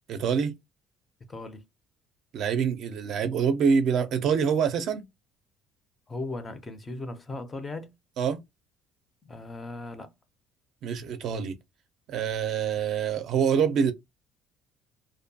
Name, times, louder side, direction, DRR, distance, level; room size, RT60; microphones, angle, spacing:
voice 1, 0.1-0.5 2.3-5.0 8.2-8.4 10.8-11.5 12.1-13.9, right 6 dB, 45° right, 0.4 m, -25 dB
voice 2, 1.3-1.6 6.1-7.9 9.2-10.1, left 2 dB, 15° left, 0.4 m, -37 dB
2.6 x 2.2 x 2.6 m
cardioid pair, 170°, 0 cm